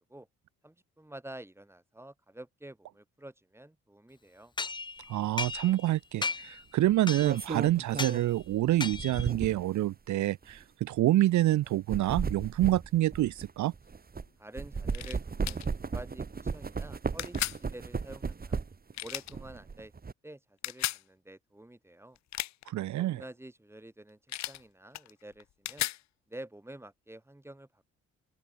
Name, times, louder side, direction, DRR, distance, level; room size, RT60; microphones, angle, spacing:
voice 1, 0.6-4.5 14.4-18.7 19.0-19.9 20.2-22.2 22.9-24.2 24.5-25.9 26.3-27.9, right 1 dB, 10° right, 6.3 m, -48 dB
sound 1, 4.6-5.9 6.2-6.6 7.1-7.5 8.0-8.2 8.8-9.3, left 4 dB, 15° left, 0.5 m, -35 dB
voice 2, 5.1-13.7 22.7-23.2, right 15 dB, 70° right, 0.8 m, -27 dB
sound 2, 5.4-5.6 6.9-9.7 10.4-10.6 11.7-14.3 14.6-18.9 19.3-20.1, right 5 dB, 30° right, 3.0 m, -35 dB
sound 3, 14.9-15.2 15.4-15.7 17.2-17.6 18.9-19.3 20.6-21.0 22.2-22.7 24.3-24.6 24.9-26.0, left 14 dB, 65° left, 0.6 m, -35 dB
open air
cardioid pair, 90°, 30 cm